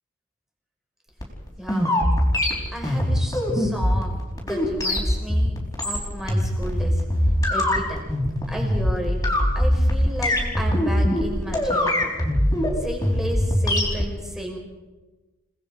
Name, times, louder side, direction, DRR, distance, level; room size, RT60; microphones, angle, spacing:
sound 1, 1.2-14.0, left 1 dB, 15° left, 4.8 m, -22 dB
voice 1, 1.6-2.0 2.7-5.5 5.8-7.0 7.5-8.1 8.5-9.2 9.6-12.1 12.8-14.6, equal, ahead, 0 dB, 5.2 m, -33 dB
30.0 x 20.0 x 5.1 m, 1.2 s
head